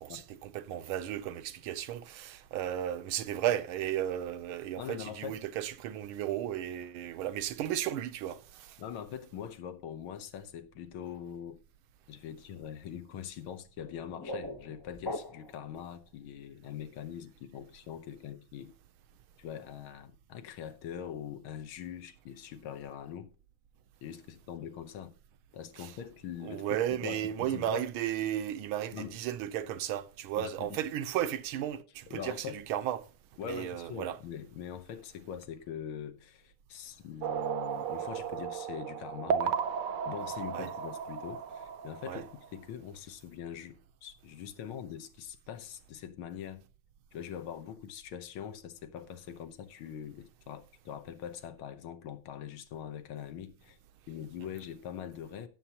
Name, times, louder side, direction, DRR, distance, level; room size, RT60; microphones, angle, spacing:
voice 1, 0.0-8.8 25.8-25.9 26.4-33.0 33.4-34.2 40.5-40.7 42.1-42.2, right 11 dB, 85° right, 1.6 m, -34 dB
voice 2, 4.8-5.4 8.8-11.6 12.1-18.7 19.4-23.3 24.0-25.1 25.5-27.9 28.9-29.2 30.4-30.8 32.1-32.6 33.4-39.6 40.1-46.6 47.1-53.8 54.1-55.5, left 9 dB, 85° left, 1.8 m, -43 dB
sound 1, 13.8-15.7, left 1 dB, 35° left, 0.3 m, -40 dB
sound 2, 37.2-42.6, right 7 dB, 70° right, 1.2 m, -35 dB
17.0 x 7.4 x 2.9 m
omnidirectional pair, 2.3 m